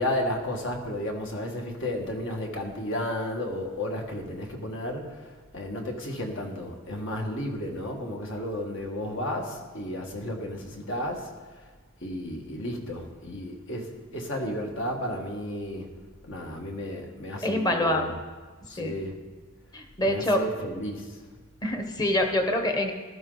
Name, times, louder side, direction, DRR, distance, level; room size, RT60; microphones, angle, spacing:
voice 1, 0.0-11.7 12.0-15.9 16.2-18.2 18.7-19.1 20.0-21.3, left 1 dB, 60° left, 2 dB, 1.7 m, -33 dB
voice 2, 17.4-18.1 18.8-19.0 19.7-20.4 21.6-22.9, left 1 dB, 20° left, 4 dB, 1.1 m, -25 dB
15.0 x 12.5 x 4.0 m, 1.4 s
head